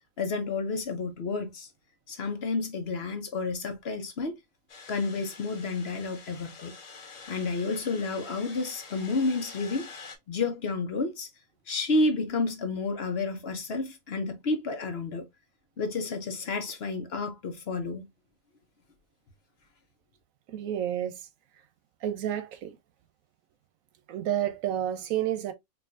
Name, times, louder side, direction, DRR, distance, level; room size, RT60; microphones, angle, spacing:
voice 1, 0.2-1.7 2.1-4.4 4.9-6.7 7.3-9.9 10.3-11.3 11.7-15.3 15.8-18.1, left 3 dB, 55° left, 1.0 m, -30 dB
sound 1, 4.7-10.2, left 4 dB, 75° left, 1.4 m, -47 dB
voice 2, 20.5-21.2 22.0-22.8 24.1-25.5, right 11 dB, 85° right, 1.1 m, -30 dB
4.6 x 2.7 x 2.5 m
omnidirectional pair, 1.4 m